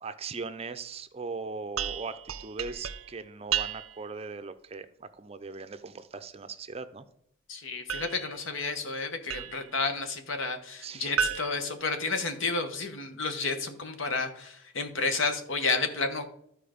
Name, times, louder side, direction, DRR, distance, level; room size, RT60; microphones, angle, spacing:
voice 1, 0.0-7.1 10.8-11.1, right 4 dB, 30° right, 10 dB, 0.5 m, -39 dB
sound 1, 1.8-4.1 7.9-9.8 11.2-12.6, right 8 dB, 90° right, 0.6 m, -35 dB
voice 2, 7.5-16.2, left 3 dB, 70° left, 8 dB, 1.1 m, -31 dB
12.5 x 4.6 x 5.1 m, 0.71 s
head